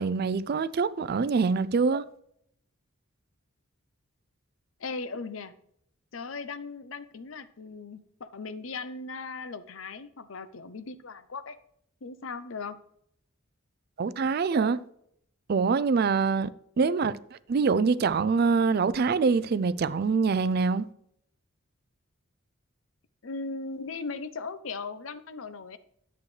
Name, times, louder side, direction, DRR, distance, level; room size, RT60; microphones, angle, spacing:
voice 1, 0.0-2.0 14.0-14.8 15.5-16.5 16.8-17.2 17.5-20.9, right 5 dB, 50° right, 0.4 m, -24 dB
voice 2, 4.8-5.5 6.1-11.6 12.0-12.8 16.8-17.0 23.2-25.8, left 4 dB, 70° left, 0.6 m, -38 dB
10.5 x 7.9 x 3.2 m
head